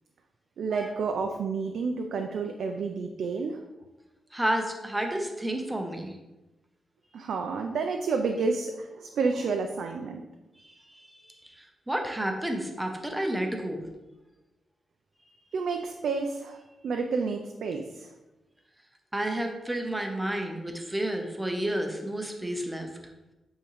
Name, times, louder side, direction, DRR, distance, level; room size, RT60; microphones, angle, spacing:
voice 1, 0.6-3.6 7.1-10.2 15.5-18.1, right 4 dB, 75° right, 4 dB, 0.4 m, -30 dB
voice 2, 4.3-6.2 10.6-13.8 19.1-22.9, right 1 dB, 10° right, 3 dB, 0.7 m, -31 dB
8.4 x 3.7 x 3.1 m, 1.1 s
wide cardioid pair, 160°, 0 cm